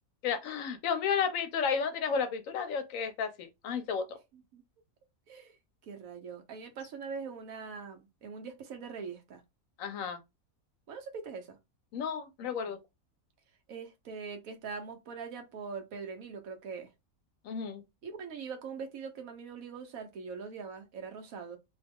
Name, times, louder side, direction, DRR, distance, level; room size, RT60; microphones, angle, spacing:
voice 1, 0.2-4.2 9.8-10.2 11.9-12.8 17.4-17.8, left 6 dB, 70° left, 1.0 m, -32 dB
voice 2, 5.8-9.4 10.9-11.6 13.7-16.9 18.0-21.6, right 5 dB, 75° right, 1.2 m, -42 dB
2.8 x 2.3 x 3.5 m
omnidirectional pair, 1.5 m